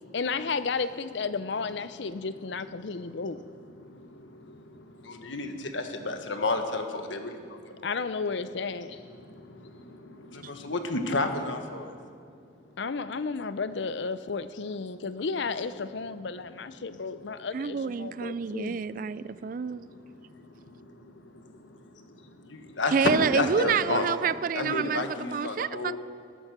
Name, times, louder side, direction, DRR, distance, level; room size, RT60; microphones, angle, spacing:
voice 1, 0.1-3.4 7.8-8.9 12.8-18.8, left 4 dB, 70° left, 13 dB, 0.6 m, -33 dB
voice 2, 2.8-8.0 8.9-11.9 14.9-15.0 17.1-17.4 18.2-24.1 24.5-26.0, left 2 dB, 90° left, 6 dB, 1.4 m, -33 dB
voice 3, 17.5-19.9 22.9-26.0, right 6 dB, 45° right, 17 dB, 0.4 m, -28 dB
20.0 x 10.0 x 6.1 m, 2.2 s
head